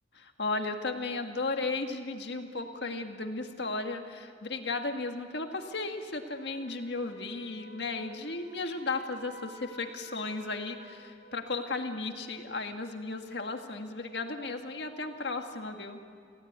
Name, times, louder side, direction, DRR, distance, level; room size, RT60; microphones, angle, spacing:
voice 1, 0.2-16.0, left 3 dB, 65° left, 5 dB, 1.8 m, -35 dB
Wind instrument woodwind instrument, 6.2-12.5, right 1 dB, 65° right, 5.2 m, -53 dB
29.5 x 16.5 x 9.5 m, 2.3 s
head